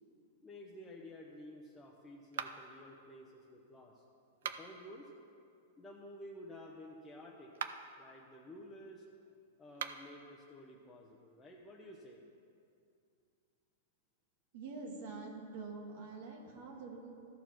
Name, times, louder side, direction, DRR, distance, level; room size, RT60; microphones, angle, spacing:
voice 1, 0.4-4.0 4.4-5.1 5.8-7.5 7.9-9.0 9.6-12.2, left 1 dB, 10° left, -3 dB, 0.8 m, -52 dB
sound 1, 2.3-2.8 4.3-4.9 7.5-8.0 9.7-10.2, right 8 dB, 80° right, 0.5 m, -42 dB
voice 2, 14.5-17.1, right 3 dB, 65° right, 0 dB, 1.6 m, -46 dB
13.5 x 4.6 x 6.0 m, 2.5 s
hypercardioid pair, 135°, 0 cm